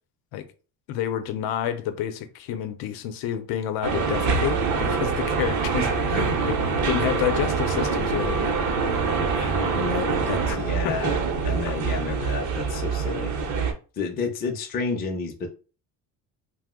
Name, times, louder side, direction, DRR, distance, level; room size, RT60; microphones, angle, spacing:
voice 1, 0.9-8.6 10.5-10.6 10.8-11.0, left 11 dB, 75° left, 0.6 m, -29 dB
sound 1, 3.8-13.7, right 5 dB, 50° right, 0.7 m, -25 dB
voice 2, 9.3-13.3 14.0-15.5, left 4 dB, 25° left, 0.5 m, -30 dB
2.7 x 2.0 x 3.6 m
cardioid pair, 155°, 37 cm